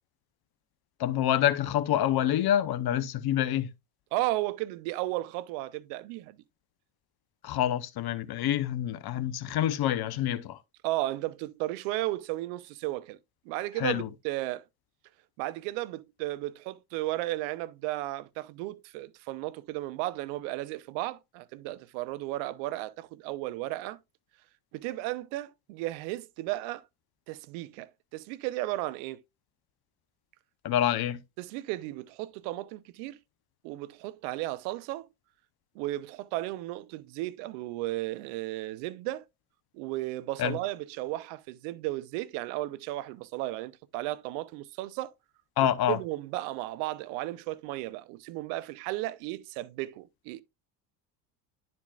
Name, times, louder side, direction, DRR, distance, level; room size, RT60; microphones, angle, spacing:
voice 1, 1.0-3.7 7.4-10.6 13.8-14.1 30.6-31.2 40.4-40.6 45.6-46.0, left 11 dB, 55° left, 0.9 m, -27 dB
voice 2, 4.1-6.4 10.8-13.2 13.5-14.6 15.4-24.0 24.7-26.8 27.3-29.2 31.4-33.2 33.6-35.1 35.7-39.2 39.7-45.1 45.9-50.4, right 17 dB, 75° right, 0.7 m, -34 dB
11.5 x 4.3 x 2.4 m
hypercardioid pair, 70°, 45 cm